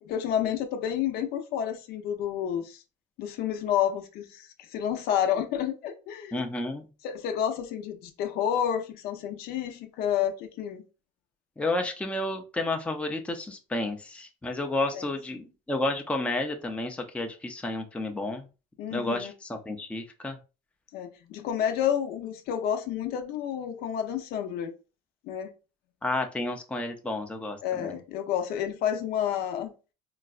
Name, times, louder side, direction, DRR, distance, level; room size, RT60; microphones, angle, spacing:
voice 1, 0.0-2.8 3.2-6.4 7.0-10.8 14.9-15.1 18.8-19.3 20.9-24.7 25.2-25.5 27.6-29.7, left 9 dB, 60° left, 6 dB, 0.6 m, -30 dB
voice 2, 6.3-6.9 11.6-18.4 18.9-20.4 26.0-27.9, left 2 dB, 5° left, 4 dB, 0.5 m, -31 dB
3.9 x 2.2 x 2.4 m, 0.32 s
supercardioid pair, 95°, 18 cm